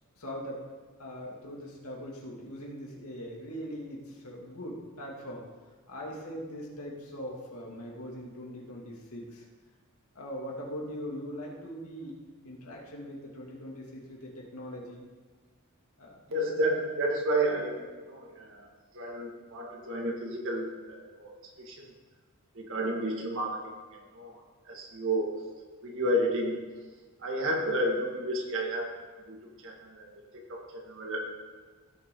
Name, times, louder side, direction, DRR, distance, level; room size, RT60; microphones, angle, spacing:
voice 1, 0.1-0.6 1.0-5.4 5.9-9.4 10.1-12.1 12.4-15.0 16.0-16.2, equal, 85° left, -2 dB, 2.6 m, -41 dB
voice 2, 16.3-18.7 18.9-21.9 22.5-25.3 25.8-26.6 27.2-29.0 29.3-31.2, right 1 dB, 60° right, 0 dB, 2.1 m, -32 dB
16.5 x 7.2 x 3.9 m, 1.4 s
head